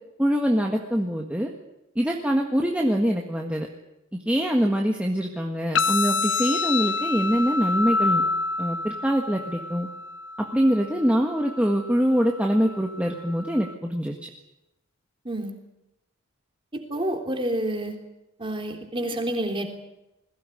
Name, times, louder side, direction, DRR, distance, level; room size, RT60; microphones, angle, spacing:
voice 1, 0.2-1.5 1.9-3.7 4.2-8.2 8.6-9.9 10.5-14.3, equal, 5° right, 0 dB, 1.6 m, -24 dB
sound 1, 5.8-13.7, left 3 dB, 55° left, 0.9 m, -28 dB
voice 2, 15.2-15.6 16.7-18.0 18.4-19.6, right 1 dB, 25° right, 4 dB, 3.4 m, -28 dB
21.5 x 17.0 x 9.9 m, 0.91 s
head